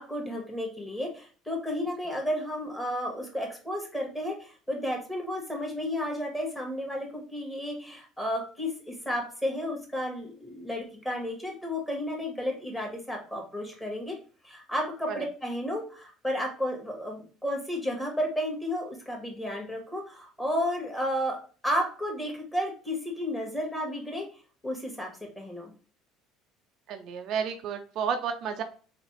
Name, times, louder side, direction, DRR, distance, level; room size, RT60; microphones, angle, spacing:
voice 1, 0.0-14.2 14.4-21.4 21.6-24.3 24.6-25.7, equal, 10° left, 0 dB, 1.9 m, -32 dB
voice 2, 26.9-28.6, right 7 dB, 60° right, 6 dB, 0.5 m, -31 dB
3.9 x 2.9 x 3.3 m, 0.39 s
supercardioid pair, 85°, 0 cm